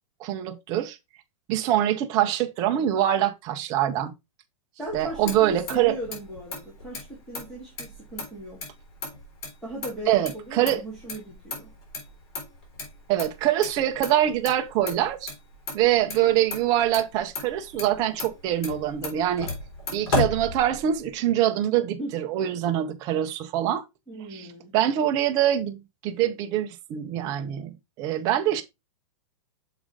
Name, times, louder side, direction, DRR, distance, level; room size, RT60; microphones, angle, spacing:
voice 1, 0.2-1.0 1.5-4.1 4.9-6.0 10.1-10.8 13.1-15.3 15.7-19.5 19.9-23.8 24.3-24.5 24.7-28.6, right 12 dB, 20° right, 0.5 m, -24 dB
voice 2, 4.8-8.6 9.6-11.7 22.0-22.1 24.1-24.8, right 1 dB, ahead, 1.7 m, -38 dB
Motor vehicle (road), 4.9-21.1, left 3 dB, 45° left, 3.4 m, -36 dB
6.2 x 4.9 x 3.6 m
supercardioid pair, 170°, 18 cm